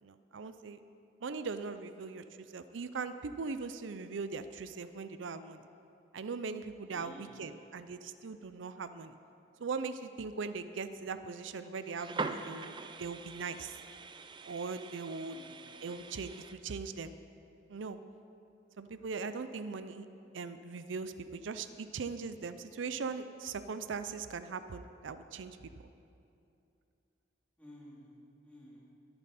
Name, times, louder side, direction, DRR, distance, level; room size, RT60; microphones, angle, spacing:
voice 1, 0.0-0.8 1.2-2.2 2.5-5.6 6.1-9.2 9.6-12.7 13.0-13.8 14.4-15.4 15.8-17.1 17.7-18.0 18.8-20.1 20.3-25.6, right 4 dB, 90° right, 11 dB, 0.5 m, -40 dB
voice 2, 6.9-7.5 15.2-16.0 27.6-28.2 28.4-28.8, equal, 10° left, -7 dB, 3.5 m, -54 dB
sound 1, 11.8-16.5, right 4 dB, 25° right, 0.5 m, -43 dB
22.5 x 8.9 x 4.2 m, 2.7 s
head